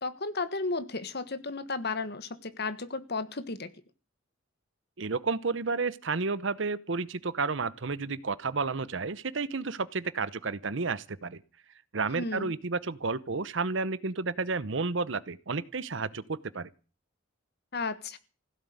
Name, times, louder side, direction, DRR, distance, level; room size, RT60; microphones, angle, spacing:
voice 1, 0.0-3.7 12.1-12.5 17.7-18.2, left 3 dB, 50° left, 1.4 m, -34 dB
voice 2, 5.0-11.4 11.9-16.7, right 4 dB, 60° right, 0.8 m, -31 dB
16.0 x 7.7 x 9.3 m
head